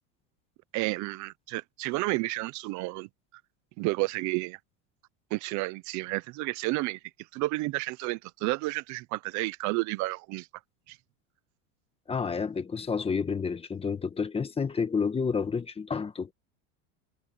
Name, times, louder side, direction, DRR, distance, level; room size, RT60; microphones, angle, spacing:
voice 1, 0.7-3.1 3.8-4.6 5.3-10.5 10.9-11.0, right 22 dB, 45° right, 0.6 m, -31 dB
voice 2, 12.1-16.3, left 5 dB, 15° left, 1.3 m, -30 dB
supercardioid pair, 150°, 40 cm